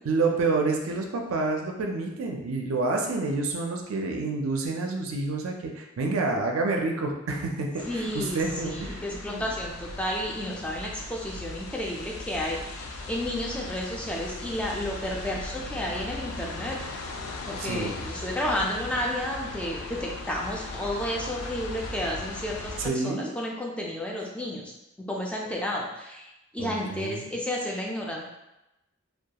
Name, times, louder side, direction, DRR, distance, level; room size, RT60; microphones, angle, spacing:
voice 1, 0.0-9.0 9.3-9.6 17.6-18.0 22.8-23.3 26.6-27.2, right 3 dB, 80° right, 2 dB, 0.4 m, -28 dB
sound 1, 7.8-22.9, left 2 dB, 85° left, 0.4 m, -38 dB
voice 2, 7.9-16.8 17.5-24.7 25.1-26.3 26.5-28.2, left 1 dB, 5° left, -2 dB, 0.3 m, -32 dB
2.3 x 2.2 x 2.8 m, 0.93 s
head